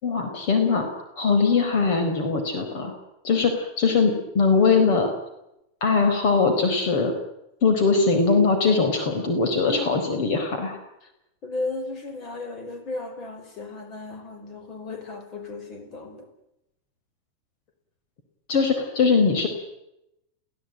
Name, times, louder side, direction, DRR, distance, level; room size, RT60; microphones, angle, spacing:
voice 1, 0.0-2.9 3.2-5.1 5.8-7.1 7.6-10.8 18.5-19.5, left 4 dB, 50° left, 6 dB, 4.3 m, -21 dB
voice 2, 9.7-10.1 11.0-11.1 11.4-16.3, left 2 dB, 30° left, 7 dB, 5.1 m, -35 dB
29.5 x 17.0 x 9.2 m, 0.86 s
supercardioid pair, 165°, 0 cm